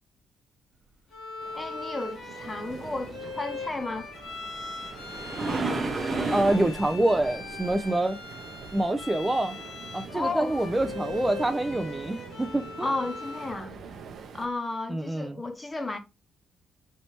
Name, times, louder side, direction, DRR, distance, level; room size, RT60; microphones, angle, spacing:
Bowed string instrument, 1.1-13.6, left 3 dB, 85° left, 1.5 m, -40 dB
sound 1, 1.4-14.5, right 6 dB, 65° right, 0.6 m, -45 dB
voice 1, 1.5-4.1 10.1-10.6 12.8-13.7 14.3-16.0, left 2 dB, 20° left, 0.8 m, -33 dB
sound 2, 4.0-9.2 13.1-13.2 13.8-13.9, right 3 dB, 35° right, 0.8 m, -33 dB
voice 2, 6.3-8.2 8.7-9.6 9.9-12.9 14.9-15.4, right 1 dB, 15° right, 0.4 m, -26 dB
3.2 x 3.0 x 2.7 m
cardioid pair, 90°, 0 cm